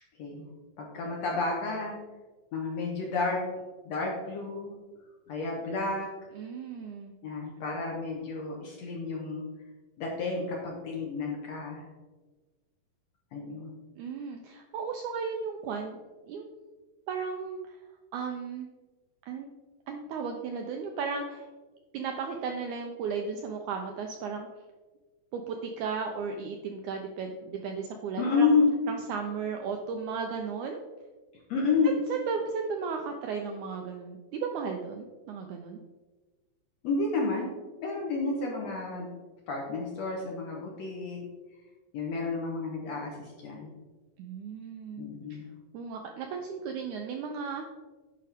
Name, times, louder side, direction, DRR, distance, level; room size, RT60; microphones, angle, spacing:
voice 1, 0.8-2.0 2.5-3.4 3.9-4.7 5.3-6.1 7.2-9.4 10.0-11.9 13.3-13.8 28.2-28.7 31.5-31.9 36.8-37.5 37.8-39.1 39.5-41.2 41.9-43.7 45.0-45.5, left 4 dB, 65° left, -1 dB, 1.8 m, -30 dB
voice 2, 6.3-7.1 14.0-16.0 16.3-16.6 17.1-17.8 18.1-18.7 19.3-19.5 19.9-21.5 21.9-24.5 25.3-28.5 28.9-30.8 31.8-35.8 44.2-45.4 45.7-47.7, right 5 dB, 80° right, 3 dB, 1.7 m, -35 dB
10.0 x 5.6 x 3.4 m, 1.3 s
omnidirectional pair, 4.1 m